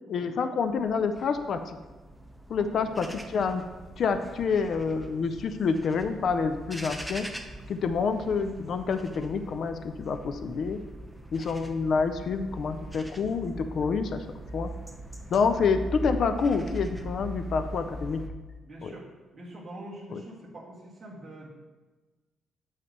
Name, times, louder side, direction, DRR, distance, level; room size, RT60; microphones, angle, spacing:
voice 1, 0.1-1.8 2.5-3.6 4.0-7.3 7.7-10.8 11.3-14.2 14.5-14.7 15.3-18.2 18.8-18.9 20.1-20.2, left 5 dB, 60° left, 8 dB, 0.5 m, -28 dB
sound 1, 0.6-18.3, right 1 dB, ahead, 0.7 m, -41 dB
voice 2, 18.6-19.1 19.3-21.5, right 1 dB, 30° right, -6 dB, 2.0 m, -44 dB
8.6 x 3.3 x 6.5 m, 1.2 s
cardioid pair, 90°, 0 cm